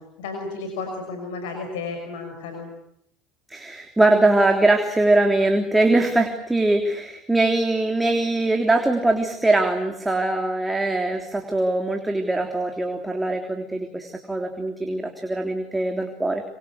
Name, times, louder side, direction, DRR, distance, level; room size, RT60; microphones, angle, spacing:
voice 1, 0.0-2.7, left 3 dB, 75° left, 5 dB, 5.7 m, -33 dB
voice 2, 3.5-16.4, right 2 dB, 10° right, 4 dB, 3.4 m, -22 dB
26.0 x 26.0 x 8.4 m, 0.73 s
hypercardioid pair, 75°, 0 cm